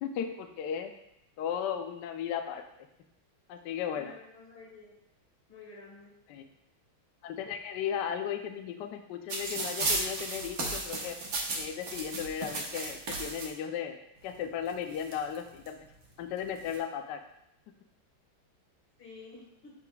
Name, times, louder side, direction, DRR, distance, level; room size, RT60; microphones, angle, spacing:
voice 1, 0.0-0.9 1.4-2.6 3.5-4.1 6.3-6.5 7.2-11.1 11.5-14.0 14.2-15.9 16.2-17.2, left 8 dB, 70° left, 6 dB, 1.1 m, -35 dB
voice 2, 3.9-4.9 5.5-6.1 19.0-19.7, left 3 dB, 85° left, -2 dB, 2.6 m, -50 dB
sound 1, 9.3-13.5 14.4-14.5 14.7-15.7 16.4-16.8, right 2 dB, 50° right, 1.4 m, -34 dB
10.5 x 5.0 x 2.3 m, 0.81 s
omnidirectional pair, 2.3 m